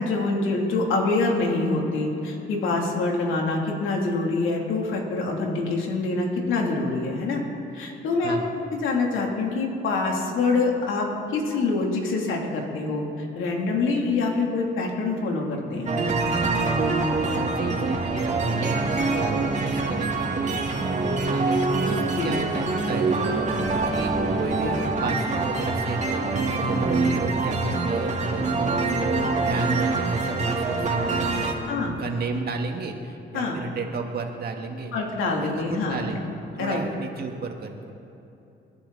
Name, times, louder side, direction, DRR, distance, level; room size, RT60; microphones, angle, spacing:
voice 1, 0.0-7.4 7.7-8.4 8.7-15.9 22.1-22.3 31.7-31.9 33.3-33.6 34.9-36.1 36.6-36.8, left 3 dB, 80° left, -1 dB, 3.2 m, -25 dB
sound 1, 15.9-31.5, right 3 dB, 35° right, 2.3 m, -25 dB
voice 2, 17.2-23.5 23.9-34.9 35.4-36.3 36.5-37.9, right 3 dB, 50° right, 2 dB, 2.2 m, -33 dB
29.0 x 11.5 x 4.2 m, 2.9 s
cardioid pair, 90°, 20 cm